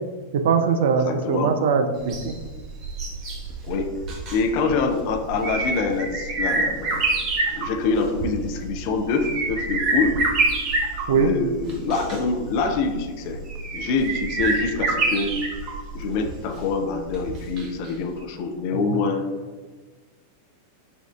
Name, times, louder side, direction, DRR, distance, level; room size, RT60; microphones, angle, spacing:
voice 1, 0.3-2.3 11.1-11.3, right 6 dB, 55° right, 7 dB, 0.3 m, -21 dB
voice 2, 0.9-1.5 3.6-4.0 4.3-7.0 7.5-10.2 11.1-13.4 13.7-15.4 15.9-19.2, left 4 dB, 45° left, 4 dB, 0.4 m, -25 dB
sound 1, 2.0-17.9 18.2-18.3, right 3 dB, 35° right, 0.7 m, -27 dB
5.1 x 2.4 x 2.3 m, 1.3 s
figure-of-eight pair, 90°, 0 cm